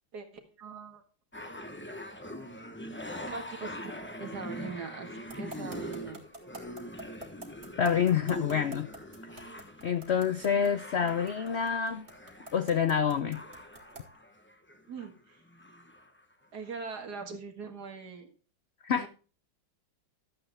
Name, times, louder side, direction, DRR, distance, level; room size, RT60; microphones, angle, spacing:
voice 1, 0.1-1.0 3.3-6.2 14.9-15.4 16.5-18.3 18.9-19.1, right 5 dB, 60° right, 2.3 m, -41 dB
sound 1, 1.3-15.1 15.4-16.2 16.7-16.8, left 1 dB, 10° left, 0.5 m, -43 dB
sound 2, 5.3-14.2, right 1 dB, 35° right, 2.5 m, -46 dB
voice 2, 7.8-8.9 9.8-12.0 12.5-13.4 18.8-19.1, left 7 dB, 70° left, 0.6 m, -27 dB
12.5 x 8.0 x 3.4 m
omnidirectional pair, 2.0 m